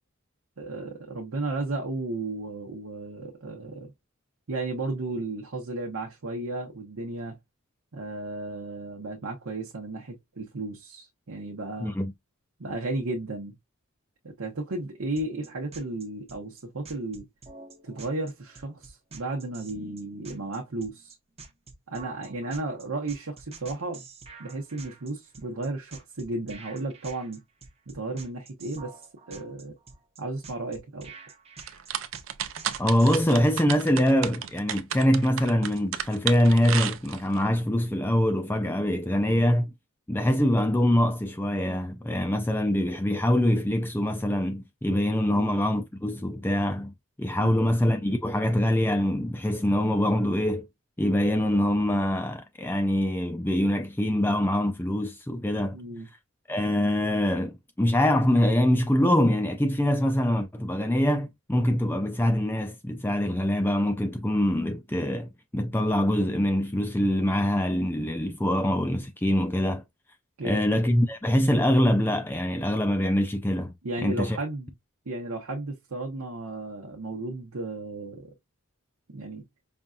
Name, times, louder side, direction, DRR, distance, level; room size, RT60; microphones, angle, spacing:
voice 1, 0.6-3.9 4.5-7.4 7.9-11.9 12.6-13.5 14.2-17.3 17.8-21.2 21.9-24.0 24.4-27.4 27.9-29.0 29.3-29.8 30.2-31.1 45.3-45.5 47.4-47.6 55.7-56.1 70.4-70.6 73.8-74.7 75.1-78.3 79.1-79.4, right 2 dB, 85° right, 0.9 m, -34 dB
voice 2, 11.8-12.1 32.8-39.7 40.1-50.7 51.0-55.8 56.5-69.8 70.4-73.7 74.0-74.4, left 1 dB, 10° left, 0.4 m, -24 dB
sound 1, 15.2-33.3, right 4 dB, 30° right, 0.8 m, -47 dB
sound 2, 31.6-37.4, right 9 dB, 60° right, 0.5 m, -32 dB
5.3 x 2.5 x 2.3 m
head